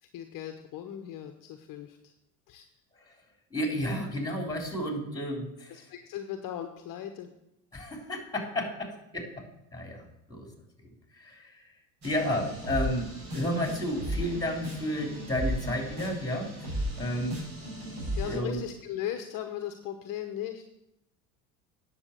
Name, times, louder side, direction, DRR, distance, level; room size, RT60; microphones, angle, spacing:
voice 1, 0.0-2.1 2.5-2.7 5.7-7.3 12.1-12.3 18.2-20.6, left 11 dB, 45° left, 6 dB, 1.0 m, -38 dB
voice 2, 3.5-5.7 7.7-9.5 9.7-10.5 11.1-11.6 12.0-16.5 17.0-17.4 18.2-18.6, equal, 10° left, 2 dB, 3.6 m, -32 dB
sound 1, 12.0-18.4, equal, 55° right, 5.3 m, -35 dB
9.9 x 7.1 x 6.7 m, 0.83 s
hypercardioid pair, 75°, 44 cm